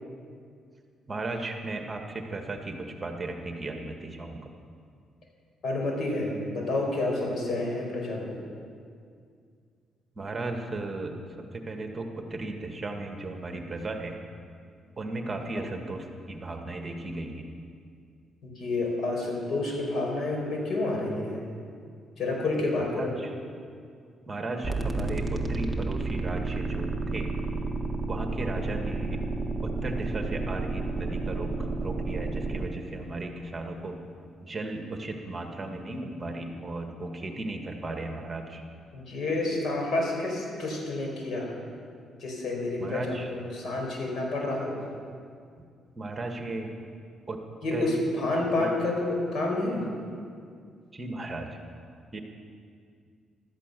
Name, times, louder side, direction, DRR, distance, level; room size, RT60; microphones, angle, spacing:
voice 1, 1.1-4.5 10.1-14.2 15.0-17.5 23.0-23.3 24.3-27.4 28.1-29.2 29.6-34.0 34.4-38.6 42.8-43.3 45.9-46.7 47.3-47.4 47.7-47.9 48.6-48.7 50.9-51.6 52.1-52.2, right 2 dB, 25° right, 4 dB, 1.7 m, -36 dB
voice 2, 5.6-8.4 18.4-21.4 22.2-23.1 38.9-41.5 42.2-44.8 47.6-49.8, left 2 dB, 60° left, 0 dB, 4.7 m, -29 dB
sound 1, 24.6-32.7, right 3 dB, 5° right, 1.7 m, -31 dB
15.5 x 13.0 x 6.8 m, 2.2 s
cardioid pair, 90°, 0 cm